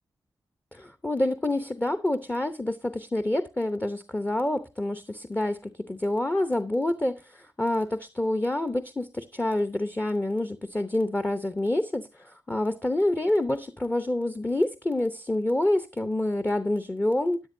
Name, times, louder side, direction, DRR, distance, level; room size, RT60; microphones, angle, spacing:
voice 1, 0.7-17.4, left 1 dB, 15° left, 0.8 m, -27 dB
13.5 x 10.0 x 2.7 m
cardioid pair, 65°, 8 cm